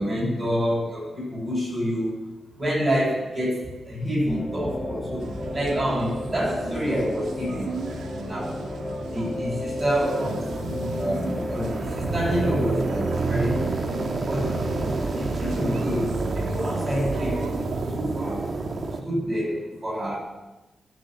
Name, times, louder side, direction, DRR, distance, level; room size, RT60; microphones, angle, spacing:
voice 1, 0.0-2.1 2.6-5.2 5.5-7.7 8.3-8.6 9.1-10.5 10.9-13.8 14.3-14.6 15.1-17.5 17.9-18.5 19.0-20.2, equal, 25° right, -4 dB, 6.9 m, -27 dB
sound 1, 4.3-15.3, left 1 dB, 20° left, 2.0 m, -33 dB
sound 2, 5.2-17.9, right 4 dB, 90° right, 1.7 m, -38 dB
sound 3, 9.8-19.0, right 3 dB, 45° right, 1.6 m, -29 dB
21.0 x 7.8 x 7.7 m, 1.1 s
wide cardioid pair, 140°, 0 cm